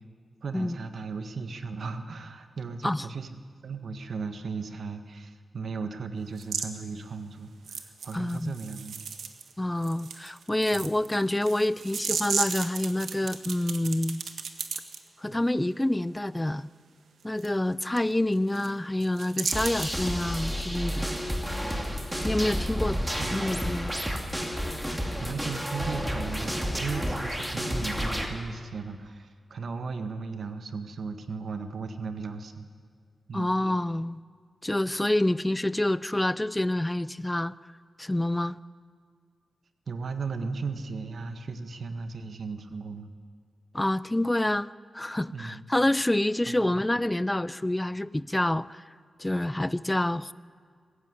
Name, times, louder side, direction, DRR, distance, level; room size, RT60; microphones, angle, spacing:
voice 1, 0.4-9.0 10.7-10.8 13.8-14.0 15.3-15.4 22.8-23.5 25.2-32.7 33.3-33.6 39.9-43.1 45.3-45.6 46.5-46.7, right 4 dB, 65° right, 8 dB, 1.6 m, -36 dB
sound 1, 6.4-6.7 7.6-9.5 9.8-15.0 17.4-17.5 18.0-18.1 18.3-18.7 19.0-20.0, right 6 dB, 90° right, 1.6 m, -34 dB
voice 2, 8.1-8.6 9.6-14.2 15.2-16.7 17.2-21.1 22.2-23.0 23.3-23.9 33.3-34.2 34.6-37.5 38.0-38.6 43.7-48.8 49.2-50.3, left 1 dB, 10° left, 17 dB, 0.5 m, -27 dB
sound 2, 19.5-28.3, equal, 5° right, 2.7 m, -31 dB
21.5 x 15.0 x 9.7 m, 2.1 s
wide cardioid pair, 115°, 0 cm